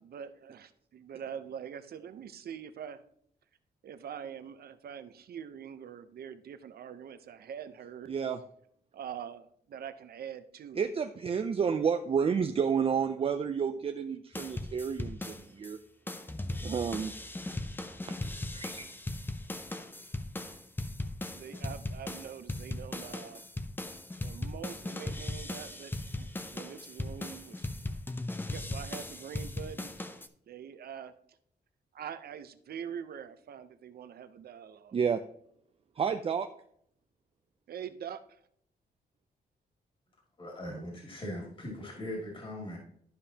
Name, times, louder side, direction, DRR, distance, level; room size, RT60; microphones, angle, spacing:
voice 1, 0.0-3.0 3.8-8.1 8.9-10.9 21.3-23.4 24.2-27.7 28.5-29.9 30.5-31.1 31.9-35.0 37.7-38.4, right 8 dB, 70° right, 11 dB, 0.7 m, -44 dB
voice 2, 8.1-8.4 10.7-15.8 16.6-17.1 18.1-18.2 18.5-18.9 34.9-35.2 36.0-36.5, right 6 dB, 35° right, 8 dB, 0.4 m, -30 dB
sound 1, 14.3-15.7 16.1-30.3, left 2 dB, 10° left, 0.6 m, -38 dB
voice 3, 40.4-42.8, left 1 dB, 30° left, -1 dB, 2.5 m, -40 dB
12.0 x 5.3 x 2.8 m, 0.67 s
cardioid pair, 110°, 17 cm